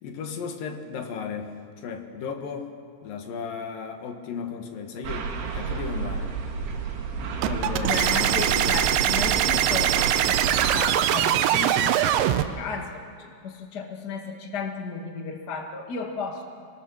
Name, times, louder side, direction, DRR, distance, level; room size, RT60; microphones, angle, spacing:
voice 1, 0.0-2.7 3.0-6.4 7.4-8.0 8.5-8.7, left 6 dB, 60° left, 5 dB, 2.6 m, -35 dB
sound 1, 5.0-10.8, right 5 dB, 60° right, 4.1 m, -31 dB
sound 2, 7.4-12.5, right 12 dB, 80° right, 2.9 m, -22 dB
voice 2, 7.8-16.4, left 5 dB, 80° left, 2 dB, 0.9 m, -34 dB
27.5 x 20.0 x 6.3 m, 2.2 s
omnidirectional pair, 5.5 m